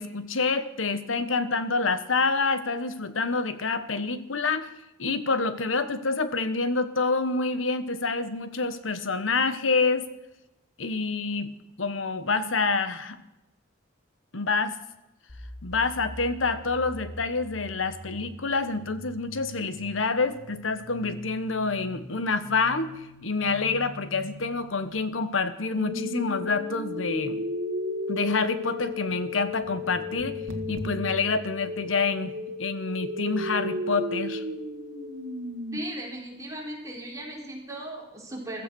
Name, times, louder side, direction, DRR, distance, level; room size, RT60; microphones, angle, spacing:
voice 1, 0.0-4.7 5.0-10.1 10.8-13.2 14.3-14.8 15.6-22.9 23.2-27.4 28.1-30.4 30.7-32.3 32.6-34.4, left 4 dB, 85° left, 12 dB, 1.3 m, -27 dB
sound 1, 15.3-25.0, equal, 50° left, 3.3 m, -44 dB
sound 2, 25.8-35.8, left 2 dB, 75° right, 1.7 m, -33 dB
voice 2, 35.7-38.6, right 1 dB, 15° right, -2 dB, 4.3 m, -37 dB
15.0 x 13.5 x 6.3 m, 0.92 s
head